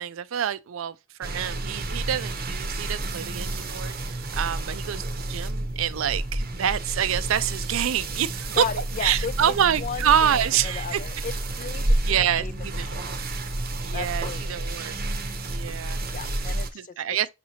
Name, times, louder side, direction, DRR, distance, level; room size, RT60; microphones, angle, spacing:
voice 1, 0.0-8.6 9.0-11.0 12.1-12.9 13.8-14.9 15.5-16.0 16.7-17.3, right 9 dB, 80° right, 0.4 m, -26 dB
sound 1, 1.2-16.7, right 1 dB, 45° right, 0.7 m, -30 dB
voice 2, 8.5-12.5 12.9-13.1 13.9-14.7 16.1-17.2, left 6 dB, 40° left, 0.4 m, -35 dB
5.7 x 2.8 x 2.8 m
head